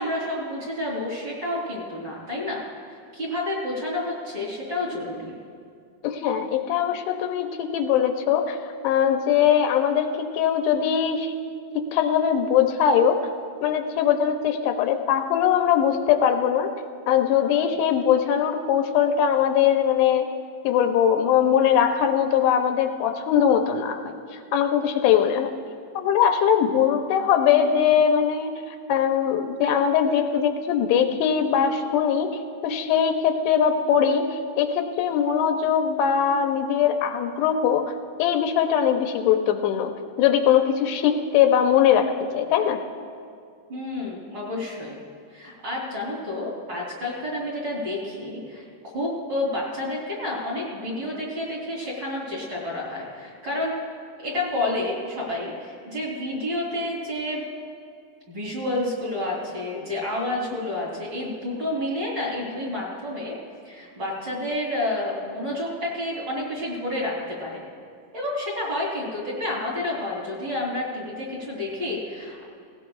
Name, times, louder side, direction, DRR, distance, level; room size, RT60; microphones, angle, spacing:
voice 1, 0.0-2.6 3.1-5.3 43.7-45.0 45.3-48.6 48.9-53.7 54.2-57.4 58.3-63.3 63.6-67.6 68.1-72.4, left 1 dB, 30° right, -5 dB, 3.1 m, -29 dB
voice 2, 6.0-8.6 8.8-11.3 11.8-13.2 13.6-16.7 17.1-20.3 20.6-25.6 26.0-28.5 28.9-32.3 32.6-37.9 38.2-39.9 40.2-42.8, left 8 dB, 85° left, 6 dB, 2.7 m, -21 dB
18.0 x 18.0 x 2.3 m, 2.4 s
omnidirectional pair, 4.9 m